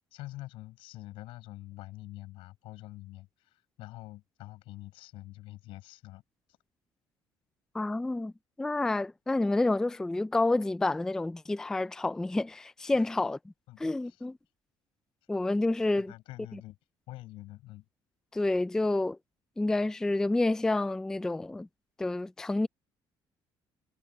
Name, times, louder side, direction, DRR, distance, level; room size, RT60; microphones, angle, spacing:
voice 1, 0.1-6.2 12.9-13.1 13.7-14.2 16.0-16.8 17.1-17.8, left 17 dB, 85° left, 7.7 m, -46 dB
voice 2, 7.7-8.3 8.6-13.4 13.8-14.4 15.3-16.1 16.5-16.6 18.3-19.2 19.6-21.7 22.0-22.7, left 2 dB, 5° left, 0.3 m, -29 dB
cardioid pair, 145°, 9 cm